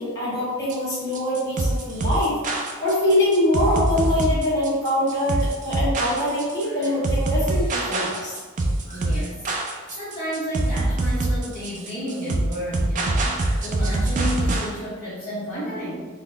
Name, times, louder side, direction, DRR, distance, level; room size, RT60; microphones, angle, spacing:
voice 1, 0.0-8.3 8.9-9.0 13.3-13.5, left 1 dB, 15° left, -10 dB, 1.2 m, -24 dB
sound 1, 0.7-14.7, right 2 dB, 35° right, 0.4 m, -24 dB
voice 2, 8.9-9.5 9.9-16.1, equal, 40° left, -10 dB, 0.9 m, -31 dB
4.0 x 2.0 x 3.3 m, 1.4 s
head